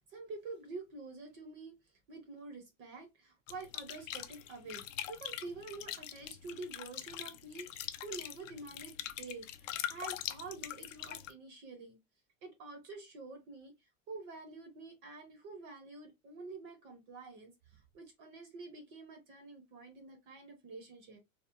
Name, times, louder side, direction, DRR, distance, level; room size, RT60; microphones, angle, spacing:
voice 1, 0.0-1.7 2.1-4.8 5.1-12.0 12.4-13.7 14.1-21.2, right 3 dB, 30° right, 0.4 m, -48 dB
sound 1, 3.5-11.3, left 12 dB, 75° left, 0.5 m, -43 dB
2.8 x 2.0 x 2.3 m
supercardioid pair, 155°, 39 cm